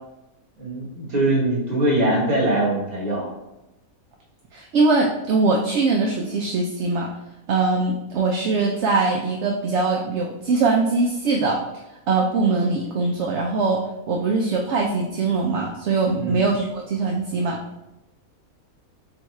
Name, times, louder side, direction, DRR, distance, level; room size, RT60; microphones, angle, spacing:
voice 1, 0.6-3.3 16.2-16.4, right 1 dB, 30° right, -4 dB, 1.3 m, -22 dB
voice 2, 4.5-7.1 7.5-11.6 12.1-17.6, right 3 dB, 65° right, 0 dB, 0.7 m, -22 dB
6.9 x 2.3 x 3.1 m, 0.94 s
omnidirectional pair, 1.5 m